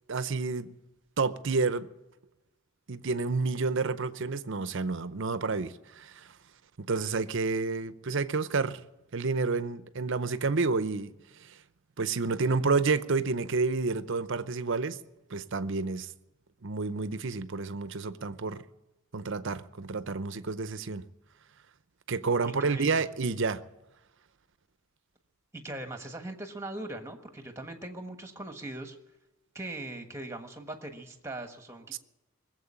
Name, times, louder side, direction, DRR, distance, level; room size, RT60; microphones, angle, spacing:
voice 1, 0.1-0.7 1.2-1.9 2.9-6.3 6.8-8.8 9.1-11.1 12.0-15.0 15.3-16.1 16.6-18.6 19.1-21.1 22.1-23.6 31.9-32.0, right 4 dB, 55° right, 0.7 m, -29 dB
voice 2, 22.4-22.9 25.5-29.0 29.5-32.0, right 1 dB, 15° right, 1.4 m, -40 dB
20.0 x 7.8 x 8.8 m
head